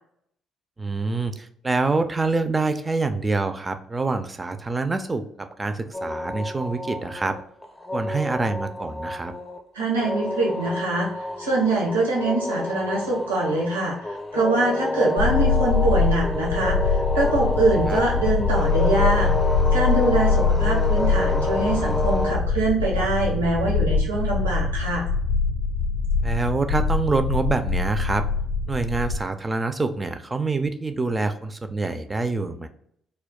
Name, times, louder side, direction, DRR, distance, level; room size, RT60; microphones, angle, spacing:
voice 1, 0.8-7.4 7.9-9.3 17.9-18.0 26.2-28.2 28.7-32.7, right 3 dB, 25° right, 8 dB, 0.3 m, -26 dB
sound 1, 5.9-22.3, left 2 dB, 20° left, 0.6 m, -29 dB
voice 2, 9.7-11.1 11.4-19.3 19.7-25.0, right 2 dB, 90° right, -3 dB, 0.7 m, -24 dB
sound 2, 15.2-29.2, left 4 dB, 85° left, 0.4 m, -23 dB
2.2 x 2.2 x 3.6 m, 0.70 s
hypercardioid pair, 50°, 0 cm